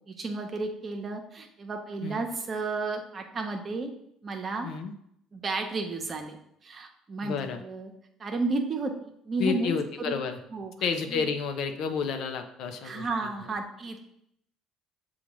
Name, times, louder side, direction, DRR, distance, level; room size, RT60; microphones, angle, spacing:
voice 1, 0.1-3.9 4.2-4.7 5.3-6.4 6.6-7.9 8.2-10.1 10.5-10.7 11.1-11.2 12.8-14.0, right 3 dB, 40° right, 4 dB, 0.8 m, -32 dB
voice 2, 7.2-7.6 9.4-10.4 10.8-13.1, left 6 dB, 65° left, 6 dB, 0.6 m, -30 dB
6.9 x 2.4 x 3.0 m, 0.73 s
hypercardioid pair, 65°, 0 cm